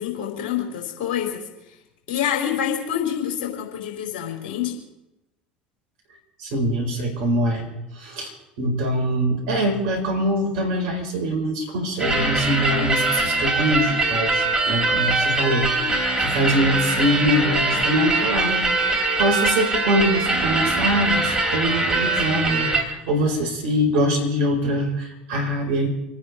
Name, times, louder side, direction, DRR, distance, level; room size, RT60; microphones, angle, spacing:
voice 1, 0.0-1.4 2.1-4.7, left 9 dB, 60° left, 1 dB, 4.8 m, -26 dB
voice 2, 6.4-7.7 7.9-8.3 8.6-25.9, equal, 60° right, 2 dB, 5.0 m, -23 dB
sound 1, 12.0-22.8, right 2 dB, 15° right, 3.3 m, -22 dB
28.0 x 9.8 x 4.9 m, 0.94 s
figure-of-eight pair, 70°, 5 cm